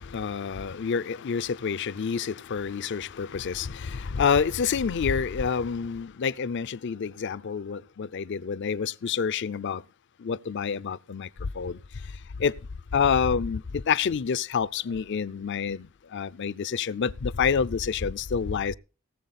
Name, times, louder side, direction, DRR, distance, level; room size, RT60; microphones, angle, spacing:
voice 1, 0.1-9.8 10.2-11.3 11.6-11.8 12.4-12.5 12.9-13.6 13.9-15.9 16.1-18.7, left 6 dB, 55° left, 0.5 m, -28 dB
18.0 x 7.3 x 4.2 m
head